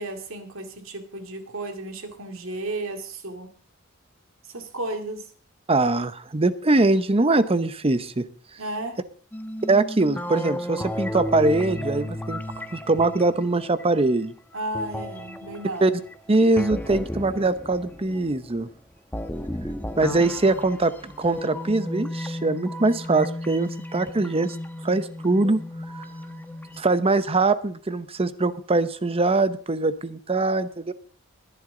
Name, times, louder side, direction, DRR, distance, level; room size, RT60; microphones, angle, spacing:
voice 1, 0.0-3.5 4.5-5.2 8.6-9.0 14.5-15.8, right 2 dB, 70° right, 6 dB, 2.2 m, -33 dB
voice 2, 5.7-8.2 9.7-12.4 12.7-14.3 15.8-15.9 16.3-18.7 20.0-24.6 24.8-25.6 26.8-30.9, right 2 dB, 30° right, 13 dB, 0.8 m, -22 dB
sound 1, 9.3-14.1 14.7-18.5 19.1-26.8, left 1 dB, 10° left, 1.0 m, -34 dB
20.0 x 10.5 x 3.9 m, 0.44 s
head